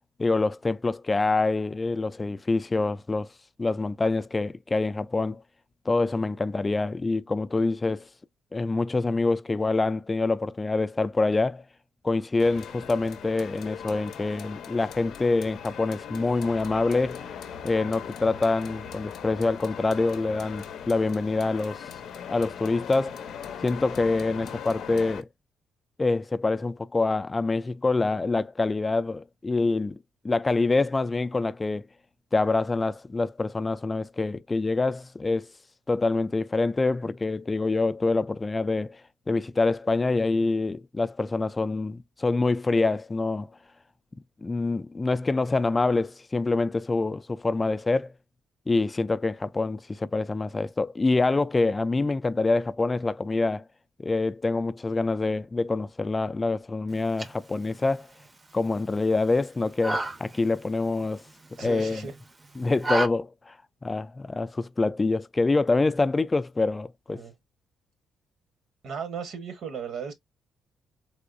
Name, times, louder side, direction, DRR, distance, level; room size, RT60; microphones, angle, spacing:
voice 1, 0.2-3.3 3.6-5.4 5.9-8.1 8.5-11.6 12.0-17.2 17.6-21.8 22.3-23.3 23.6-25.3 26.0-30.0 30.2-31.9 32.3-35.5 35.9-39.0 39.3-43.5 44.4-48.1 48.7-53.6 54.0-58.1 58.5-61.2 61.6-62.0 62.6-63.6 63.8-67.2, left 3 dB, 25° left, 0.3 m, -26 dB
sound 1, 12.4-25.2, left 8 dB, 70° left, 0.5 m, -40 dB
sound 2, 56.9-63.1, right 2 dB, 25° right, 0.6 m, -35 dB
voice 2, 61.6-62.1 67.1-67.3 68.8-70.1, right 6 dB, 70° right, 1.0 m, -35 dB
3.5 x 3.0 x 2.5 m
cardioid pair, 90°, 0 cm